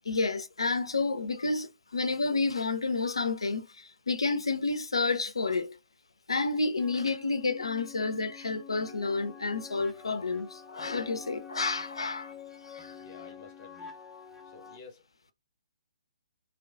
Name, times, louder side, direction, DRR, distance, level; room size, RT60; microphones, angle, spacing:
voice 1, 0.1-5.8 6.3-12.3 12.6-13.0, left 3 dB, 75° left, 0.4 m, -30 dB
sound 1, 6.8-14.8, left 7 dB, ahead, 0.3 m, -47 dB
voice 2, 13.0-14.0 14.4-15.0, left 4 dB, 35° left, 0.8 m, -51 dB
2.4 x 2.2 x 2.4 m
figure-of-eight pair, 130°, 3 cm